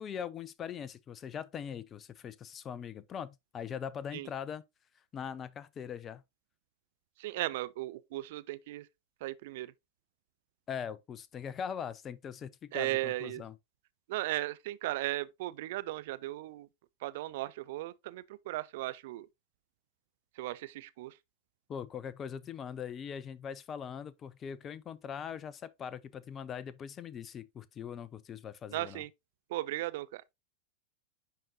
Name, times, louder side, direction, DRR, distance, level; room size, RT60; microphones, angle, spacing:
voice 1, 0.0-4.6 5.1-6.2 10.7-13.5 21.7-29.0, left 8 dB, 25° left, 0.5 m, -41 dB
voice 2, 7.2-8.9 9.2-9.7 12.7-13.4 14.1-16.7 17.0-19.3 20.4-21.2 28.7-29.1 29.5-30.2, right 17 dB, 50° right, 0.3 m, -36 dB
10.0 x 3.6 x 2.7 m
figure-of-eight pair, 90°, 0 cm